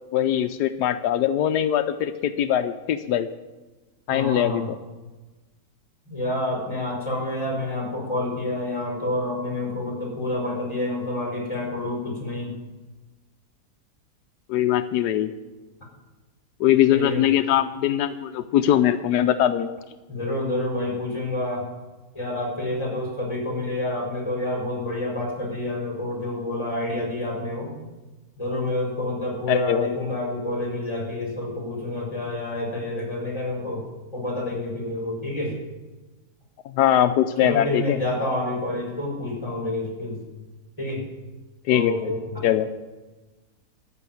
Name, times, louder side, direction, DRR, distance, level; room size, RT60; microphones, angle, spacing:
voice 1, 0.1-3.3 4.1-4.8 14.5-15.3 16.6-19.7 29.5-30.0 36.6-38.0 41.7-42.1 42.4-42.7, left 11 dB, 85° left, 9 dB, 1.2 m, -22 dB
voice 2, 4.1-4.6 6.0-12.5 16.9-17.3 20.1-21.7 22.1-27.7 28.4-33.9 34.1-35.5 37.4-40.2 40.8-41.0 41.7-42.4, left 1 dB, 15° left, -2 dB, 4.9 m, -28 dB
14.0 x 6.0 x 9.2 m, 1.2 s
omnidirectional pair, 1.7 m